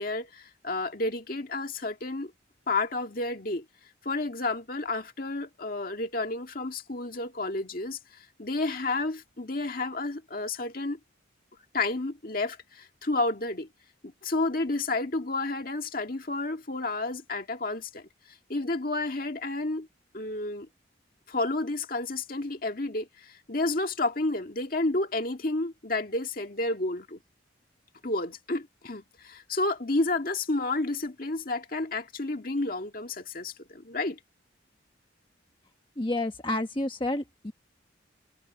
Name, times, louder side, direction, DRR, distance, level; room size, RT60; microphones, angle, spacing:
voice 1, 0.0-2.3 2.7-3.6 4.0-8.0 8.4-11.0 11.7-13.7 14.0-18.1 18.5-19.9 20.1-20.7 21.3-27.2 28.0-34.2, left 2 dB, 50° left, 2.0 m, -31 dB
voice 2, 36.0-37.5, left 1 dB, 25° left, 1.1 m, -30 dB
head